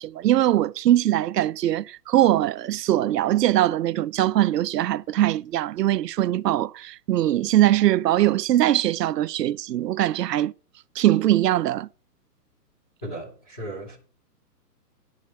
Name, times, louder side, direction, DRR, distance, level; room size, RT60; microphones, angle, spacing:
voice 1, 0.0-10.5 11.0-11.9, right 13 dB, 75° right, 0.5 m, -21 dB
voice 2, 13.0-14.0, right 1 dB, 5° left, 0.4 m, -36 dB
10.5 x 5.0 x 6.8 m
hypercardioid pair, 135°, 49 cm